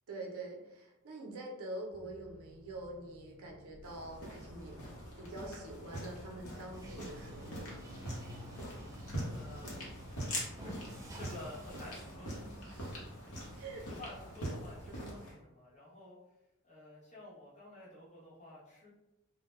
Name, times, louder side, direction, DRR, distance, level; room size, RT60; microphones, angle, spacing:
voice 1, 0.1-4.8 5.2-7.8 12.6-13.1 13.5-13.9 14.9-15.2, right 2 dB, 70° right, -1 dB, 0.6 m, -46 dB
sound 1, 1.9-9.1, left 2 dB, 85° left, 0.4 m, -59 dB
sound 2, 3.8-15.3, equal, 65° left, 0.8 m, -44 dB
Bathtub (filling or washing), 6.7-14.9, equal, 15° right, 0.4 m, -51 dB
voice 2, 9.3-9.8 10.2-12.5 13.2-16.2 16.6-18.9, left 1 dB, 35° left, -7 dB, 0.9 m, -51 dB
2.1 x 2.1 x 3.0 m, 0.97 s
head